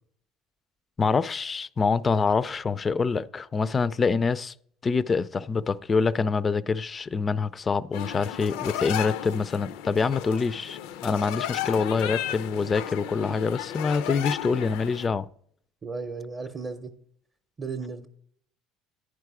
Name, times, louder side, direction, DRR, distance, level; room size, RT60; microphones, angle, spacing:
voice 1, 1.0-4.5 4.8-15.3, left 4 dB, 25° left, 0.3 m, -26 dB
sound 1, 7.9-15.1, left 11 dB, 85° left, 0.4 m, -34 dB
voice 2, 15.8-16.9 17.6-18.1, right 4 dB, 25° right, 0.6 m, -35 dB
10.0 x 4.7 x 4.8 m
cardioid pair, 130°, 0 cm